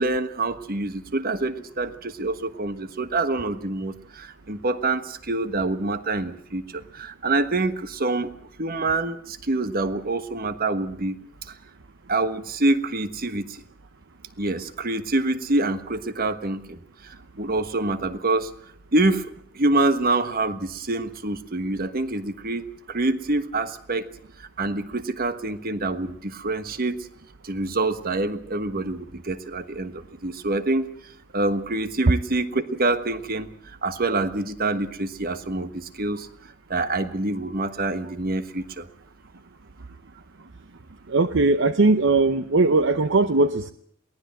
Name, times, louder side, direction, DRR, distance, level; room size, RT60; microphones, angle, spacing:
voice 1, 0.0-6.6 6.9-8.3 8.6-11.2 12.1-13.6 14.4-16.8 17.0-18.5 18.9-19.3 19.5-24.1 24.6-27.0 27.4-30.9 31.3-33.5 33.8-36.3 36.7-38.9, right 2 dB, 45° right, 11 dB, 1.4 m, -26 dB
voice 2, 41.1-43.7, right 3 dB, 60° right, 11 dB, 0.8 m, -19 dB
23.0 x 18.0 x 7.7 m, 0.65 s
head